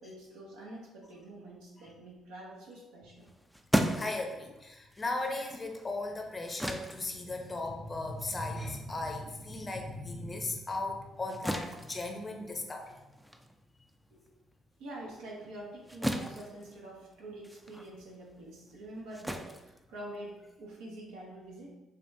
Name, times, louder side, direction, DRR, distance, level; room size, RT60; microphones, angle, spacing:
voice 1, 0.0-3.3 14.1-14.2 14.8-21.8, right 1 dB, 85° right, -3 dB, 0.9 m, -46 dB
sound 1, 3.2-10.0 10.3-20.5, equal, 5° right, 0.4 m, -38 dB
voice 2, 4.0-13.0, left 2 dB, 30° left, 3 dB, 0.7 m, -37 dB
5.0 x 2.4 x 2.7 m, 1.0 s
supercardioid pair, 60°, 0 cm